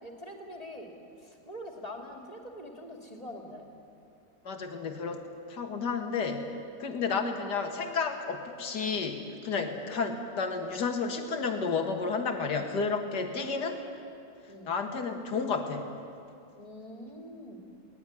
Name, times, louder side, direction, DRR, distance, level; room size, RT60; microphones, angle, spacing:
voice 1, 0.0-3.7 6.8-7.1 9.7-9.9 12.4-12.7 13.3-13.5 14.5-14.8 16.6-17.6, equal, 20° left, 1 dB, 2.9 m, -45 dB
voice 2, 4.5-6.5 6.8-13.8 14.6-15.9, left 4 dB, 65° left, 5 dB, 2.4 m, -31 dB
22.0 x 18.5 x 9.9 m, 2.5 s
omnidirectional pair, 1.9 m